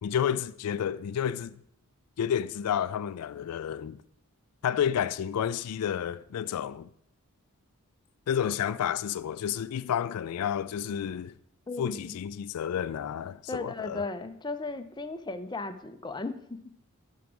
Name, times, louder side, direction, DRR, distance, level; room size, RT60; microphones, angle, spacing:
voice 1, 0.0-1.6 2.2-4.0 4.6-6.9 8.3-11.3 11.8-14.1, left 9 dB, 90° left, 0.3 m, -30 dB
voice 2, 11.7-12.2 13.5-16.6, left 3 dB, 20° left, 0.5 m, -36 dB
11.0 x 4.8 x 6.1 m
head